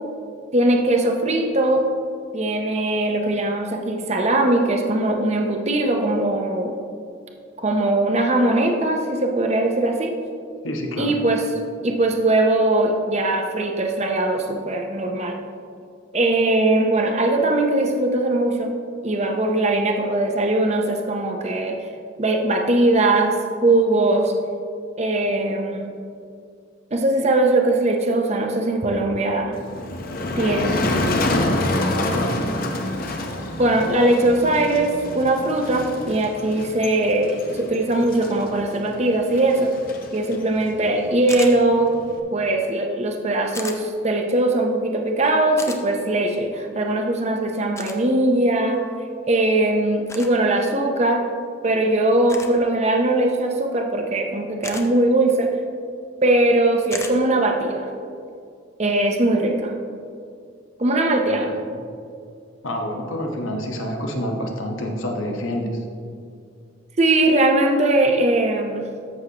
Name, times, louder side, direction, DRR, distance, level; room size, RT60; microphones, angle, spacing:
voice 1, 0.5-1.9 2.3-6.8 7.6-10.2 11.0-11.4 11.8-15.4 16.1-18.7 19.0-21.8 22.2-23.4 23.6-24.3 25.0-25.9 26.9-29.6 30.4-30.9 33.6-39.7 40.1-41.9 42.3-48.8 49.3-51.2 51.6-55.6 56.2-57.9 58.8-59.7 60.8-61.5 67.0-68.9, right 2 dB, 35° right, 3 dB, 0.6 m, -20 dB
voice 2, 10.6-11.1 31.3-32.4 61.2-61.5 62.6-65.8, equal, 80° left, 2 dB, 1.1 m, -28 dB
Motor vehicle (road), 29.5-42.2, left 1 dB, 45° left, 0.8 m, -28 dB
sound 1, 41.3-41.5 43.5-43.8 45.6-45.8 47.8-48.0 50.1-50.3 52.3-52.6 54.6-54.9 56.9-57.2, left 3 dB, 15° left, 0.5 m, -33 dB
13.5 x 6.3 x 2.9 m, 2.3 s
head